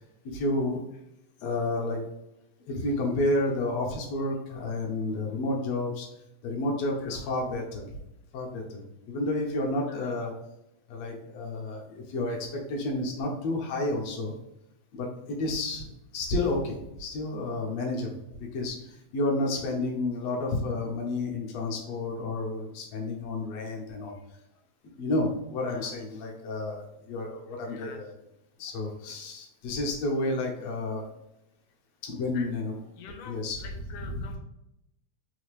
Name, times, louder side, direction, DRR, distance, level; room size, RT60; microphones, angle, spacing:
voice 1, 0.2-0.8 1.4-2.0 2.7-6.1 6.4-7.9 8.3-10.4 10.9-14.4 14.9-18.1 18.4-24.2 25.0-28.1 28.6-31.0 32.0-32.8 33.2-33.6 34.0-34.4, left 2 dB, 70° left, 0 dB, 1.8 m, -31 dB
voice 2, 7.0-7.4 9.8-10.1 25.7-25.9 27.6-28.0 32.3-32.5 33.0-34.4, left 6 dB, 85° left, 4 dB, 2.1 m, -46 dB
4.7 x 2.7 x 3.1 m, 0.86 s
omnidirectional pair, 3.5 m